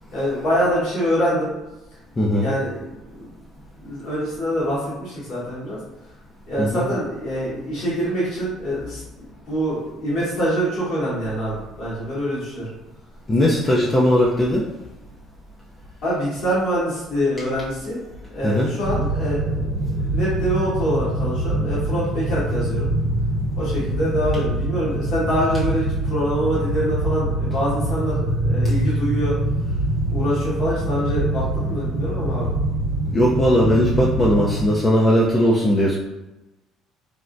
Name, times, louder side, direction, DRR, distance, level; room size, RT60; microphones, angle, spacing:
voice 1, 0.1-1.5 2.4-3.3 3.8-5.8 6.5-12.7 16.0-18.0 18.3-22.9 23.6-29.4 30.1-32.5, equal, 65° left, -8 dB, 1.3 m, -25 dB
voice 2, 2.2-2.5 6.6-6.9 13.3-14.7 18.4-18.7 33.1-36.0, equal, 25° left, -5 dB, 0.5 m, -18 dB
sound 1, 18.8-34.7, right 1 dB, 60° right, 0.6 m, -24 dB
3.4 x 2.1 x 2.6 m, 0.99 s
supercardioid pair, 70°, 0 cm